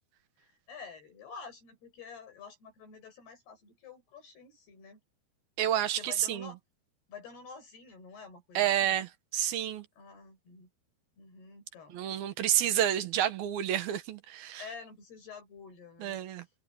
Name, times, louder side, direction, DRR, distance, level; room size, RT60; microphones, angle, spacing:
voice 1, 0.7-5.0 5.9-6.6 7.1-9.1 10.0-10.7 11.2-12.0 12.7-12.8 14.6-16.2, left 5 dB, 85° left, 8.9 m, -49 dB
voice 2, 5.6-6.5 8.5-9.9 11.9-14.6 16.0-16.4, right 11 dB, 75° right, 3.1 m, -29 dB
omnidirectional pair, 4.5 m